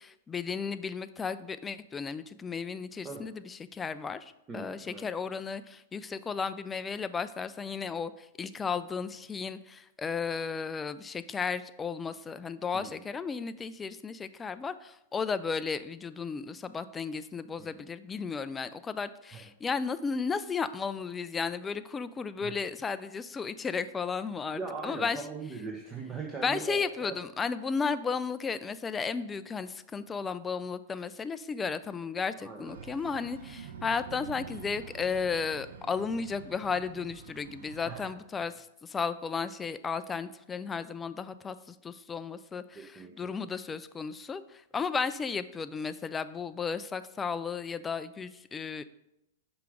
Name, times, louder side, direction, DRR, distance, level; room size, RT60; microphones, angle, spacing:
voice 1, 0.0-25.2 26.4-48.8, left 5 dB, 15° left, 13 dB, 0.4 m, -34 dB
voice 2, 4.5-5.0 12.7-12.9 17.6-17.7 19.3-19.4 22.4-22.5 24.5-27.2 32.4-32.7 37.8-38.1 42.7-43.3, right 4 dB, 20° right, 0 dB, 0.9 m, -40 dB
sound 1, 32.7-38.1, right 6 dB, 70° right, 0.7 m, -46 dB
5.7 x 4.8 x 4.9 m, 0.87 s
hypercardioid pair, 110°, 0 cm